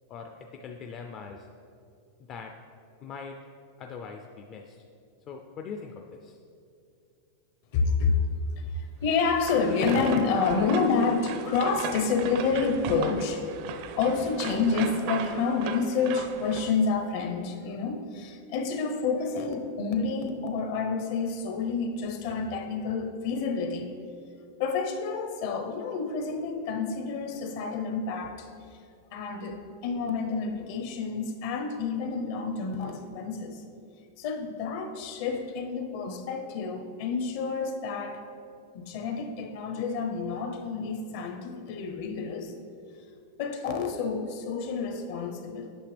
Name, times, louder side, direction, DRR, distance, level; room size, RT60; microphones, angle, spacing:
voice 1, 0.1-1.5 2.3-2.5 3.0-3.4 3.8-4.8 5.3-6.4, left 5 dB, 30° left, 3 dB, 0.4 m, -41 dB
voice 2, 7.7-8.2 8.6-13.5 14.0-23.9 24.6-28.5 29.1-33.6 34.2-38.2 38.7-42.5 43.4-45.8, left 4 dB, 55° left, 5 dB, 0.8 m, -29 dB
sound 1, 9.1-16.7, right 7 dB, 50° right, 0.4 m, -37 dB
8.8 x 5.8 x 3.4 m, 2.4 s
supercardioid pair, 150°, 0 cm